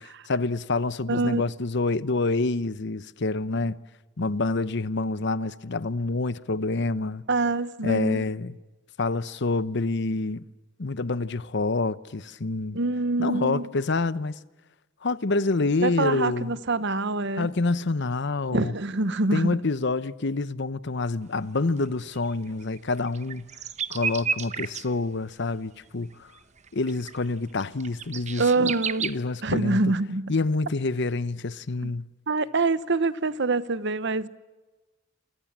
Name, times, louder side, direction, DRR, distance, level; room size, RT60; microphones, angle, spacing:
voice 1, 0.0-3.8 4.2-7.2 7.8-8.6 9.0-10.5 10.8-12.8 13.2-14.3 15.0-16.6 17.4-18.7 19.3-23.5 23.9-26.3 26.7-28.7 29.0-29.9 30.3-32.1, left 3 dB, 60° left, 0.9 m, -27 dB
voice 2, 1.1-1.4 7.3-8.2 12.7-13.7 15.8-17.5 18.5-19.6 28.4-29.1 29.4-30.3 31.8-31.9 32.3-34.3, right 3 dB, 65° right, 1.1 m, -25 dB
sound 1, 21.5-21.6 21.8-21.9 22.1-24.9 26.1-26.2 26.6-29.1, right 6 dB, 35° right, 1.0 m, -32 dB
29.5 x 24.0 x 7.4 m
head